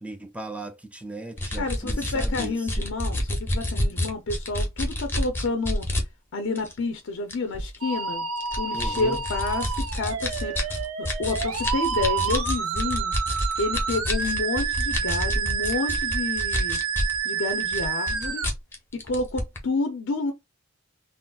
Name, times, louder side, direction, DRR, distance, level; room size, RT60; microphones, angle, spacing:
voice 1, 0.0-2.9 8.7-9.3, right 1 dB, 5° right, 0.4 m, -37 dB
sound 1, 1.4-6.0 6.5-6.7 7.3-7.8 8.4-17.2 17.5-19.6, left 1 dB, 10° left, 0.7 m, -28 dB
voice 2, 1.6-5.9 6.3-8.3 8.6-13.2 13.6-16.8 17.2-18.5 18.9-20.3, left 3 dB, 60° left, 0.5 m, -29 dB
Musical instrument, 7.8-18.5, right 6 dB, 80° right, 0.7 m, -29 dB
3.8 x 2.0 x 2.2 m
head